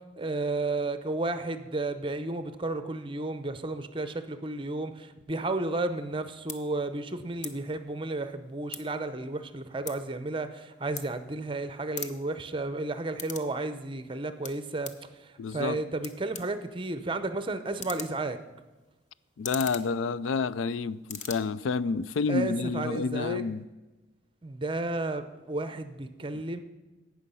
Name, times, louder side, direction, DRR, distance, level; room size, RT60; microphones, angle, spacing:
voice 1, 0.2-18.4 22.3-23.5 24.4-26.6, right 2 dB, 25° right, 0.6 m, -33 dB
sound 1, 6.0-6.1 6.4-6.6 7.4-7.6 7.9-9.1 9.4-11.6 11.8-13.5 13.8-15.1 15.7-15.8 16.0-20.7 21.0-21.4, left 6 dB, 40° left, 0.8 m, -42 dB
voice 2, 15.4-15.8 19.4-23.7, left 4 dB, 85° left, 0.4 m, -29 dB
17.5 x 6.3 x 5.5 m
head